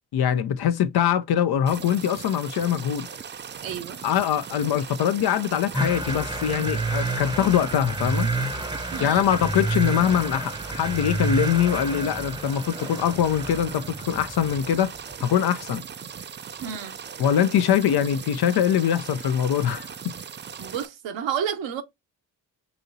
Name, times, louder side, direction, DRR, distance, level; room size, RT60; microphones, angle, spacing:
voice 1, 0.1-3.1 4.0-8.3 9.0-14.9 15.2-15.8 17.2-20.1, left 9 dB, 55° left, 0.6 m, -23 dB
sound 1, 1.7-20.9, right 7 dB, 25° right, 0.4 m, -39 dB
voice 2, 3.6-4.0 8.9-9.3 16.6-16.9 20.6-21.8, right 8 dB, 70° right, 0.9 m, -30 dB
sound 2, 5.7-15.1, right 2 dB, 10° right, 0.8 m, -29 dB
5.1 x 2.8 x 2.6 m
hypercardioid pair, 50°, 47 cm